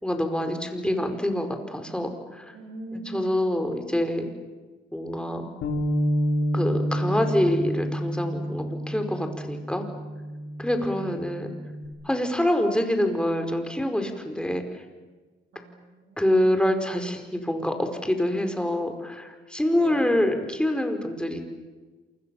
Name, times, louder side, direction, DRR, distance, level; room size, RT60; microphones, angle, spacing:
voice 1, 0.0-2.5 2.9-4.3 4.9-5.5 6.5-9.8 10.6-11.5 12.0-14.6 16.2-21.4, left 1 dB, 5° left, 5 dB, 5.1 m, -26 dB
voice 2, 2.5-3.3 10.7-11.2 15.5-16.5 19.7-20.3, right 2 dB, 75° right, 6 dB, 7.3 m, -42 dB
Bass guitar, 5.6-11.9, equal, 80° left, 4.6 m, -29 dB
28.0 x 26.5 x 7.4 m, 1.3 s
cardioid pair, 90°, 20 cm